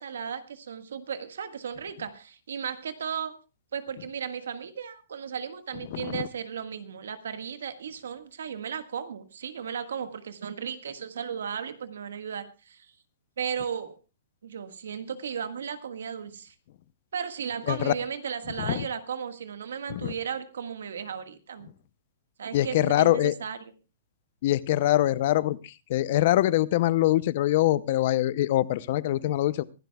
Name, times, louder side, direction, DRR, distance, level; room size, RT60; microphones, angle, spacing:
voice 1, 0.0-3.4 3.7-12.9 13.4-14.0 14.4-16.5 17.1-21.7 22.4-23.7, right 7 dB, 90° right, 9 dB, 1.6 m, -35 dB
voice 2, 5.9-6.3 17.7-17.9 18.6-18.9 19.9-20.1 22.5-23.3 24.4-29.6, left 14 dB, 45° left, 18 dB, 0.6 m, -24 dB
24.5 x 12.0 x 2.3 m, 0.30 s
hypercardioid pair, 160°, 0 cm